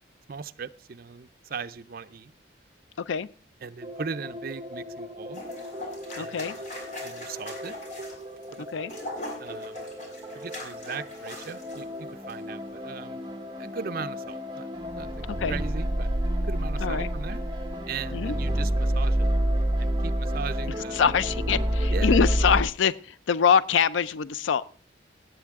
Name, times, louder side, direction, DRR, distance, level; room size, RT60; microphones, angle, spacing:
voice 1, 0.3-2.3 3.6-5.4 6.2-6.6 7.0-7.8 8.5-8.7 9.4-9.8 10.3-13.2 13.6-16.1 16.4-17.4 17.9-19.3 19.8-21.1 21.9-22.2, right 5 dB, 50° right, 10 dB, 0.5 m, -38 dB
sound 1, 3.8-22.6, equal, 20° right, 0.9 m, -30 dB
sound 2, 5.3-11.8 12.2-12.3, left 1 dB, 40° left, 3.6 m, -41 dB
voice 2, 6.2-6.5 8.7-8.9 15.4-15.5 16.8-17.1 18.1-18.3 20.9-24.6, left 6 dB, 85° left, 17 dB, 0.4 m, -24 dB
17.5 x 8.3 x 3.6 m, 0.41 s
head